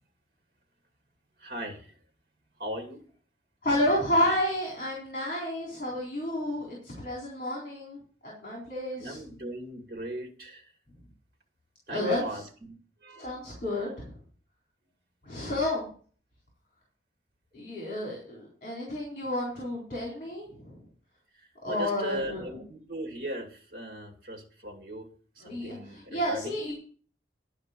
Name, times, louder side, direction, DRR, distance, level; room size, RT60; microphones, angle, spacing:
voice 1, 1.4-2.0 2.6-3.0 9.0-10.7 11.9-12.7 13.0-13.3 21.3-25.1 25.4-26.7, right 1 dB, 55° right, 4 dB, 2.4 m, -39 dB
voice 2, 3.6-9.2 11.9-12.4 13.2-14.1 15.2-15.9 17.5-20.8 21.6-22.5 25.4-26.7, left 1 dB, 45° left, -2 dB, 3.8 m, -31 dB
11.5 x 5.0 x 8.4 m, 0.44 s
head